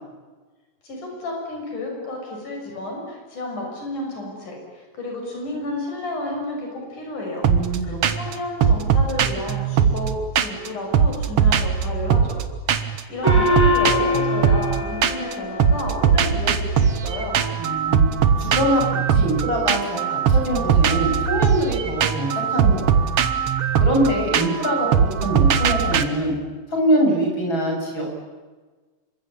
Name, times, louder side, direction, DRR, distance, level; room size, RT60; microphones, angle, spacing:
voice 1, 0.8-7.5 7.8-12.4 12.7-17.4, left 1 dB, 75° left, 0 dB, 8.0 m, -31 dB
voice 2, 7.4-8.0 8.3-8.4 17.6-18.0 18.4-18.8 19.1-22.9 23.8-24.9 25.2-26.3 26.7-28.1, right 1 dB, 35° left, 1 dB, 8.3 m, -23 dB
sound 1, 7.4-7.8 8.0-8.3 8.6-10.7 10.9-12.4 12.7-13.0 13.3-15.3 15.6-26.0, right 7 dB, 55° right, 2.0 m, -20 dB
Gong, 13.2-16.1, left 2 dB, 10° left, 6.9 m, -23 dB
27.0 x 24.0 x 8.9 m, 1.3 s
omnidirectional pair, 3.6 m